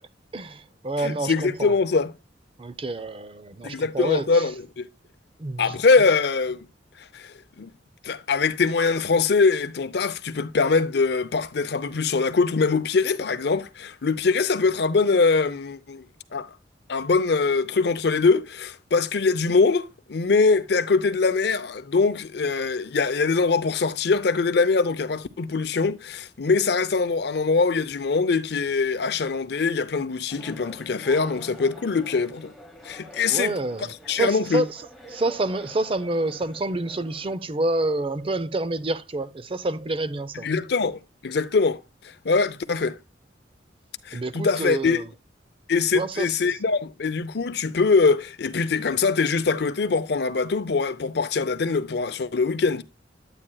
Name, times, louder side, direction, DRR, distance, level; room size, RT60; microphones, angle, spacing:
voice 1, 0.3-1.7 2.6-4.5 5.4-5.8 33.3-34.8 35.1-40.5 44.1-45.0 45.9-46.6, right 2 dB, 30° right, 0.5 m, -28 dB
voice 2, 1.0-2.1 3.6-4.9 5.6-6.7 7.1-7.7 8.0-16.0 16.3-16.5 16.9-32.5 32.8-33.5 34.1-34.6 40.4-41.8 42.2-43.0 44.1-45.0 45.7-52.8, left 4 dB, 60° left, 0.6 m, -23 dB
sound 1, 30.3-37.4, equal, ahead, 1.2 m, -47 dB
9.8 x 8.9 x 2.2 m
head